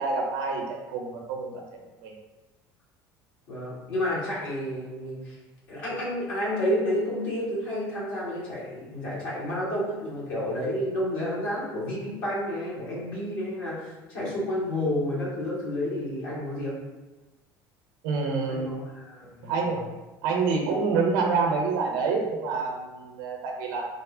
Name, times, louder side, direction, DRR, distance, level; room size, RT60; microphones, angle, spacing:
voice 1, 0.0-2.1 18.0-18.7 19.4-19.9 20.2-23.9, right 4 dB, 65° right, 1 dB, 0.5 m, -27 dB
voice 2, 3.5-5.4 5.7-16.7 18.5-19.7, left 1 dB, 70° left, -7 dB, 1.2 m, -30 dB
3.4 x 2.0 x 2.4 m, 1.1 s
figure-of-eight pair, 65°, 12 cm